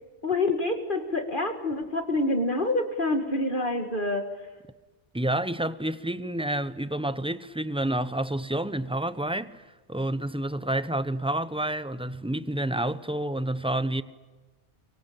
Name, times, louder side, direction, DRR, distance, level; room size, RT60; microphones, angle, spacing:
voice 1, 0.2-4.3, left 2 dB, 45° left, 2.0 m, -27 dB
voice 2, 5.1-14.0, right 1 dB, 5° right, 0.7 m, -29 dB
24.0 x 24.0 x 8.6 m
omnidirectional pair, 1.2 m